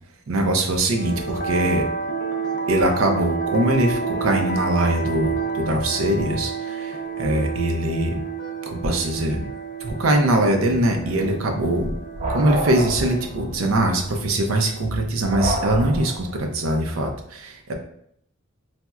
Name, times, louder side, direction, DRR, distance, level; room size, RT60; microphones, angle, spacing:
voice 1, 0.3-1.8 2.7-8.2 8.6-9.5 9.8-11.9 12.3-17.7, right 1 dB, 85° right, 4 dB, 0.5 m, -22 dB
sound 1, 0.9-15.0, right 5 dB, 55° left, 0.4 m, -30 dB
sound 2, 10.7-16.4, right 1 dB, 35° right, 0.3 m, -29 dB
4.2 x 2.0 x 2.3 m, 0.70 s
head